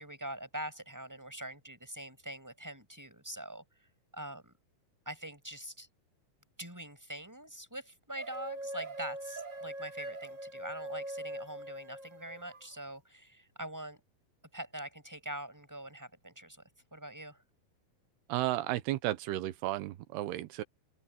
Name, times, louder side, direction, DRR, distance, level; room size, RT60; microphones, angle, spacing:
voice 1, 0.0-3.6 4.1-4.5 5.1-5.9 6.6-14.0 14.5-16.6 16.9-17.4, right 1 dB, 5° right, 5.7 m, -44 dB
sound 1, 8.2-12.6, right 1 dB, 40° right, 1.1 m, -42 dB
voice 2, 18.3-20.6, right 15 dB, 85° right, 3.0 m, -33 dB
open air
omnidirectional pair, 4.6 m